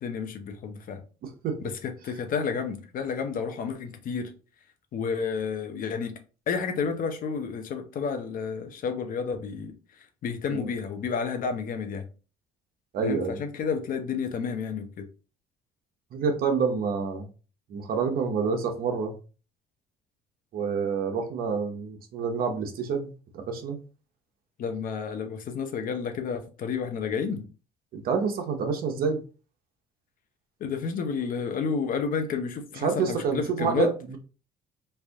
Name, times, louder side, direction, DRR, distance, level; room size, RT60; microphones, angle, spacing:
voice 1, 0.0-1.0 1.6-4.3 4.9-6.2 6.5-9.7 10.2-12.0 13.0-15.1 24.6-27.5 30.6-33.9, left 5 dB, 55° left, 0.7 m, -30 dB
voice 2, 1.2-1.6 10.5-10.7 12.9-13.4 16.1-17.3 17.7-19.2 20.5-23.8 27.9-29.2 32.8-34.2, right 5 dB, 60° right, 0.9 m, -28 dB
3.3 x 2.6 x 3.5 m
cardioid pair, 110°, 17 cm